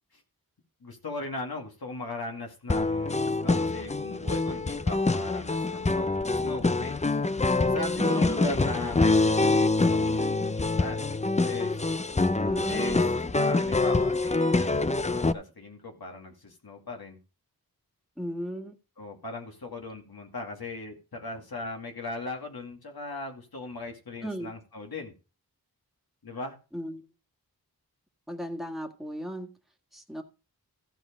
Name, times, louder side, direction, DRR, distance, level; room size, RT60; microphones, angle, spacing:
voice 1, 0.8-7.2 7.6-11.1 11.4-11.8 12.7-17.2 19.0-25.1 26.2-26.6, left 2 dB, 75° left, 2 dB, 2.5 m, -38 dB
sound 1, 2.7-15.3, left 3 dB, 20° left, 0.5 m, -25 dB
voice 2, 8.0-8.4 12.5-13.0 18.2-18.8 24.2-24.5 26.7-27.0 28.3-29.5 29.9-30.2, right 1 dB, ahead, 3 dB, 1.8 m, -35 dB
15.0 x 5.2 x 5.2 m, 0.32 s
wide cardioid pair, 55°, 37 cm